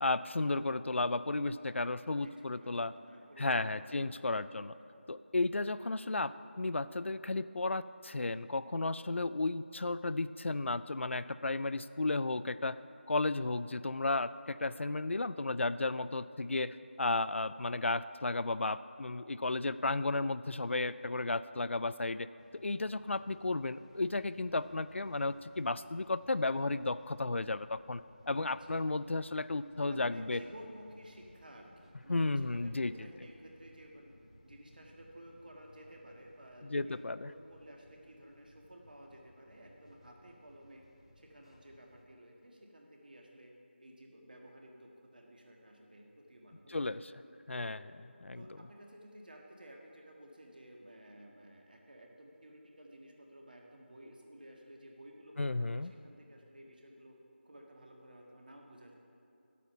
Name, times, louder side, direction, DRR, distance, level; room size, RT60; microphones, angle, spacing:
voice 1, 0.0-2.9 3.4-4.7 5.1-12.8 13.1-16.7 17.0-22.3 22.5-28.0 28.3-30.4 32.1-32.9 36.6-37.3 46.7-47.0 47.5-47.8 48.2-48.4 55.4-55.9, left 2 dB, 80° left, 15 dB, 0.4 m, -33 dB
voice 2, 2.2-4.5 16.5-16.7 28.4-28.7 29.9-34.1 34.4-40.8 41.1-43.5 43.8-47.0 47.6-47.8 48.3-57.2 57.4-58.9, right 1 dB, 45° right, 1 dB, 1.5 m, -54 dB
sound 1, 22.4-42.0, left 1 dB, 30° left, 0.7 m, -62 dB
10.0 x 8.3 x 5.5 m, 2.6 s
figure-of-eight pair, 175°, 7 cm